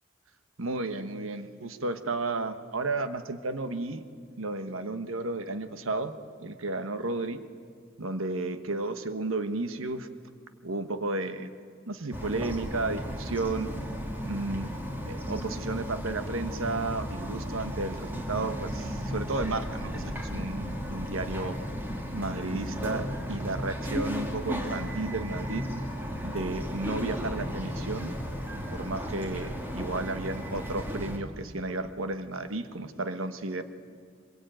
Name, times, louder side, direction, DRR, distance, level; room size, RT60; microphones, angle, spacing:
voice 1, 0.6-4.0 4.4-6.1 6.4-7.4 8.0-10.1 10.6-11.5 11.9-13.7 14.2-14.7 15.1-21.6 22.1-25.6 26.2-28.1 28.5-33.6, right 2 dB, 85° right, 9 dB, 1.3 m, -33 dB
Bird vocalization bird call bird song, 12.1-31.2, equal, 10° right, 2.5 m, -35 dB
24.0 x 22.0 x 9.1 m, 2.2 s
head